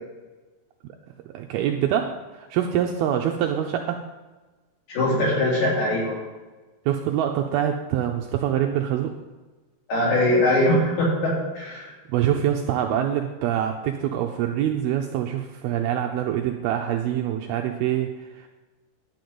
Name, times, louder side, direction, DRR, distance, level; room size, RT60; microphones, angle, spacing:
voice 1, 1.3-4.1 6.9-9.2 12.1-18.5, right 10 dB, 80° right, 3 dB, 2.2 m, -25 dB
voice 2, 4.9-6.2 9.9-11.9, left 1 dB, 65° left, -7 dB, 5.8 m, -21 dB
11.5 x 5.2 x 7.8 m, 1.2 s
omnidirectional pair, 4.9 m